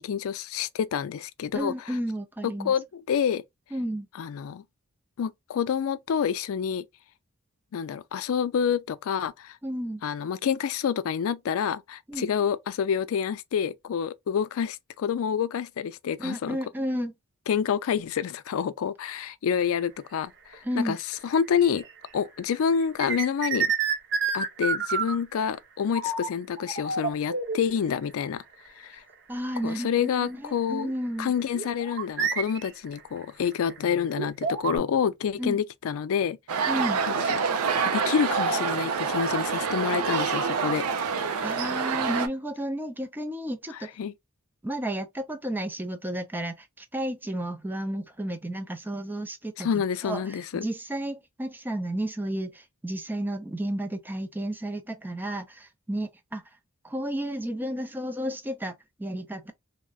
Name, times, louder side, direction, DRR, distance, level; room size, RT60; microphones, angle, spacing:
voice 1, 0.0-1.9 2.6-3.4 4.2-4.6 5.2-6.8 7.7-9.6 10.0-16.6 17.5-21.0 21.2-21.8 22.1-23.7 24.3-28.4 28.8-29.0 29.6-30.9 31.2-36.4 37.1-37.4 37.8-40.8 44.0-44.1 49.6-50.7, left 7 dB, 70° left, 0.3 m, -28 dB
voice 2, 1.5-2.7 3.7-4.1 9.6-10.0 12.1-12.3 16.2-17.1 20.6-21.0 29.3-31.3 35.4-35.6 36.7-37.0 41.4-43.9 44.6-49.7 50.0-56.4 56.8-58.7 59.0-59.5, right 1 dB, 10° right, 0.4 m, -32 dB
sound 1, 19.6-19.8 20.5-22.1 22.4-25.4 25.9-26.3 26.6-27.8 28.6-28.7 29.1-29.2 29.8-29.9 31.5-34.8, right 5 dB, 55° right, 0.7 m, -29 dB
sound 2, 36.5-42.3, right 5 dB, 90° right, 0.5 m, -27 dB
3.6 x 2.1 x 2.3 m
head